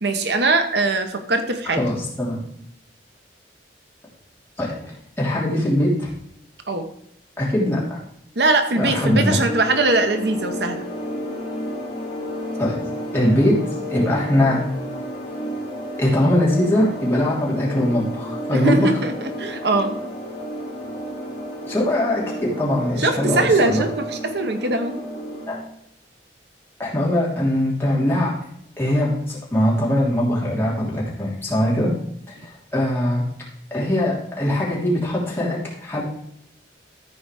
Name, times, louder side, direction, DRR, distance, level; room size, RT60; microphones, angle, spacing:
voice 1, 0.0-1.8 6.7-6.9 8.4-10.9 18.5-20.0 23.0-25.0, right 2 dB, 65° right, 7 dB, 1.0 m, -21 dB
voice 2, 1.8-2.4 4.6-6.1 7.4-8.0 8.8-9.4 12.6-12.8 13.1-14.6 16.0-18.9 21.7-23.8 25.5-25.6 26.8-28.5 28.8-31.9 32.3-33.2 33.7-36.0, left 1 dB, 15° left, -6 dB, 3.3 m, -21 dB
sound 1, 8.9-25.6, equal, 35° left, 3.4 m, -32 dB
14.0 x 4.8 x 4.9 m, 0.73 s
head